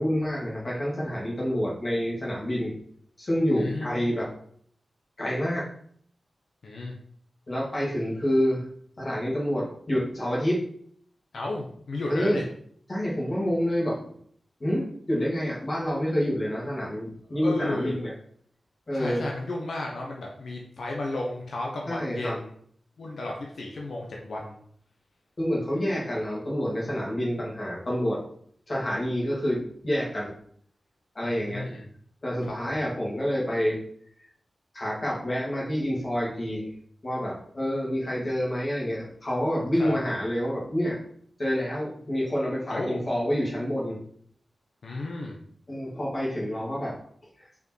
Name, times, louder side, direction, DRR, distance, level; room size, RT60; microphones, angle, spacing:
voice 1, 0.0-2.7 3.2-4.3 5.2-5.7 7.5-8.6 9.0-10.6 12.1-12.4 12.9-14.1 14.6-18.1 18.9-19.3 21.9-22.4 25.4-28.2 28.7-30.3 31.1-31.8 32.2-33.8 34.7-36.7 37.0-41.0 41.4-44.0 45.7-47.0 47.4-47.5, equal, 35° left, -5 dB, 2.7 m, -28 dB
voice 2, 3.6-3.9 6.6-6.9 11.3-12.4 17.3-18.1 18.9-22.5 23.0-24.6 31.2-31.9 32.4-32.8 39.7-39.9 42.7-43.0 44.8-45.4, left 2 dB, 75° left, -1 dB, 1.2 m, -33 dB
5.6 x 5.3 x 4.6 m, 0.62 s
wide cardioid pair, 135°, 0 cm